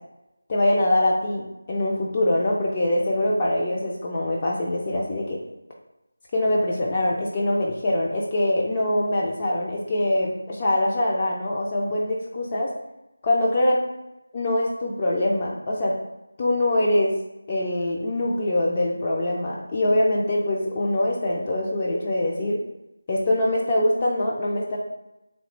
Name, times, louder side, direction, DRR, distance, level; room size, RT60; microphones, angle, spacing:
voice 1, 0.5-5.4 6.3-12.7 13.2-13.8 14.3-15.9 16.4-17.1 17.5-22.6 23.1-24.8, left 1 dB, 25° left, -3 dB, 0.3 m, -23 dB
3.0 x 2.5 x 3.0 m, 0.93 s
figure-of-eight pair, 165°, 0 cm